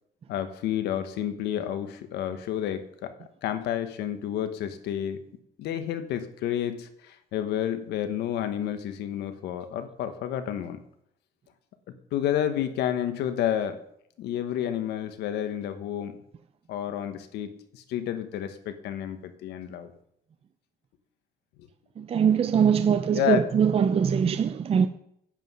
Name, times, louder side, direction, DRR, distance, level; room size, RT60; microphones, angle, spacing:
voice 1, 0.3-3.1 3.4-5.2 5.6-10.8 12.1-13.8 14.2-16.2 16.7-19.9 23.1-23.4, left 10 dB, 80° left, 1.3 m, -30 dB
voice 2, 22.0-24.9, right 7 dB, 35° right, 0.6 m, -22 dB
9.4 x 9.0 x 5.5 m
cardioid pair, 110°, 17 cm